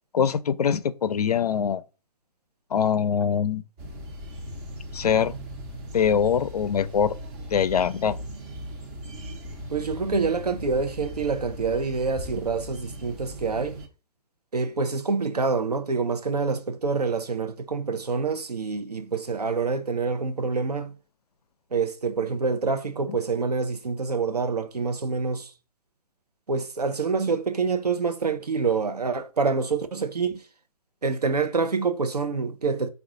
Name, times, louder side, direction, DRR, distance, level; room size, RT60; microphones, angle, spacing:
voice 1, 0.1-1.8 2.7-3.6 4.9-5.3 5.9-7.1 7.5-8.2 23.1-23.2, left 7 dB, 75° left, 0.4 m, -23 dB
sound 1, 3.8-13.9, equal, 25° right, 0.7 m, -38 dB
voice 2, 9.7-13.8 14.5-20.9 21.7-25.5 26.5-30.3 31.0-32.9, right 4 dB, 90° right, 0.6 m, -26 dB
3.7 x 2.3 x 3.7 m
figure-of-eight pair, 130°, 20 cm